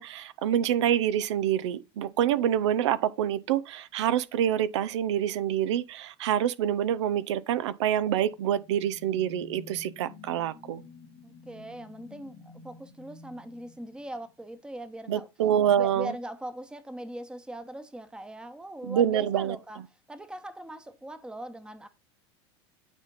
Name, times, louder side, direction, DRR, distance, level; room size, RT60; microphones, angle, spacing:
voice 1, 0.0-10.8 15.1-16.1 18.8-19.6, right 10 dB, 80° right, 0.7 m, -26 dB
sound 1, 8.3-14.6, left 3 dB, 35° left, 1.1 m, -51 dB
voice 2, 11.2-15.3 15.8-19.8 20.1-21.9, right 1 dB, 5° right, 0.9 m, -40 dB
9.2 x 3.6 x 3.9 m
supercardioid pair, 115°, 15 cm